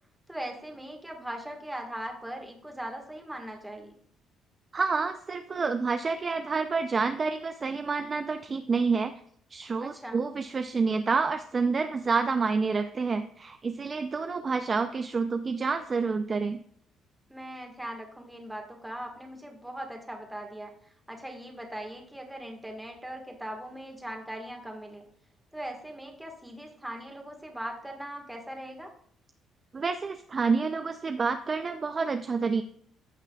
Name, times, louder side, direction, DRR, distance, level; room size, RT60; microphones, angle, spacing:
voice 1, 0.3-3.9 9.8-10.2 17.3-25.0 25.5-28.9, right 1 dB, 5° right, 2 dB, 1.5 m, -40 dB
voice 2, 4.7-9.1 9.5-16.6 29.7-32.6, right 4 dB, 25° right, 8 dB, 0.4 m, -28 dB
15.0 x 5.8 x 2.3 m, 0.66 s
cardioid pair, 165°, 0 cm